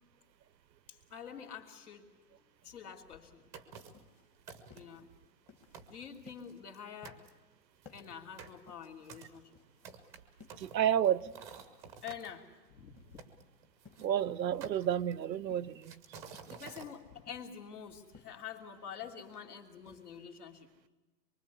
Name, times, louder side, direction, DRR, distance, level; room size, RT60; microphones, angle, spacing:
voice 1, 0.9-2.1 2.6-3.5 4.7-5.1 5.9-7.2 7.9-9.6 12.0-13.5 16.5-20.7, left 7 dB, 65° left, 3.2 m, -47 dB
sound 1, 3.5-4.1 4.5-5.0 5.5-5.6 5.7-6.8 7.0-7.3 7.8-12.3 13.2-14.1 14.6-15.3 15.8-16.9, right 6 dB, 5° right, 0.7 m, -51 dB
sound 2, 3.9-20.2, left 4 dB, 15° left, 1.4 m, -61 dB
voice 2, 10.6-11.3 14.0-16.0, right 10 dB, 90° right, 0.8 m, -30 dB
24.0 x 23.5 x 8.3 m
hypercardioid pair, 160°, 50 cm